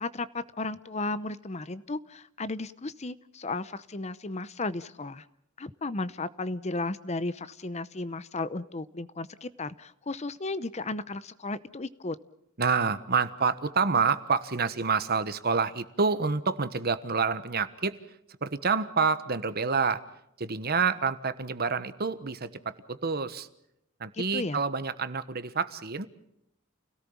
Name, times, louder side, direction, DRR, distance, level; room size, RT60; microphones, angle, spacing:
voice 1, 0.0-5.2 5.6-12.2 24.3-24.6, left 2 dB, 35° left, 15 dB, 0.8 m, -34 dB
voice 2, 12.6-18.0 18.4-20.0 20.4-23.5 24.0-26.1, right 5 dB, 50° right, 12 dB, 1.3 m, -28 dB
29.0 x 18.0 x 7.3 m, 0.79 s
head